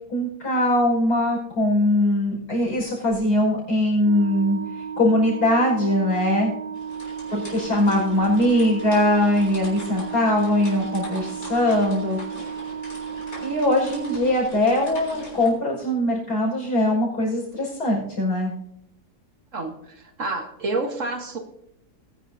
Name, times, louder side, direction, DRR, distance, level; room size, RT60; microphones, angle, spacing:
voice 1, 0.1-4.6 5.0-6.5 7.3-12.2 13.4-18.5, left 1 dB, 75° left, -3 dB, 5.9 m, -21 dB
Organ, 4.0-14.9, right 7 dB, 80° right, 1.8 m, -34 dB
sound 1, 6.7-15.5, left 1 dB, 55° left, 4.1 m, -42 dB
voice 2, 19.5-21.4, right 2 dB, 50° right, 5 dB, 1.7 m, -29 dB
20.0 x 10.5 x 2.7 m, 0.76 s
omnidirectional pair, 1.7 m